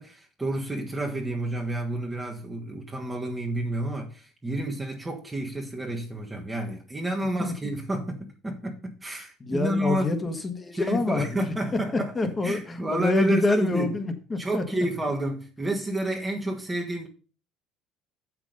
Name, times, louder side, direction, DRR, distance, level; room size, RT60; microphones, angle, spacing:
voice 1, 0.0-10.2 10.7-13.9 14.4-17.1, right 1 dB, 15° right, 1.4 m, -30 dB
voice 2, 9.4-11.5 12.1-14.6, left 3 dB, 25° left, 1.6 m, -27 dB
7.2 x 6.1 x 5.2 m
supercardioid pair, 100°, 0 cm